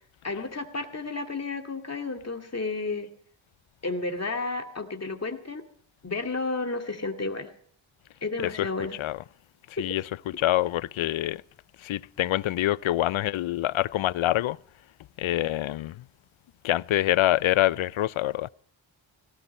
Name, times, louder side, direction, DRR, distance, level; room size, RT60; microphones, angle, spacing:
voice 1, 0.2-3.1 3.8-5.6 6.0-7.5 8.2-9.0 9.8-9.9, left 3 dB, 30° left, 2.3 m, -32 dB
voice 2, 8.4-8.7 9.0-9.2 9.7-11.4 11.8-14.6 15.2-16.0 16.6-18.5, left 14 dB, 75° left, 0.6 m, -26 dB
18.0 x 17.0 x 4.3 m
cardioid pair, 60°, 47 cm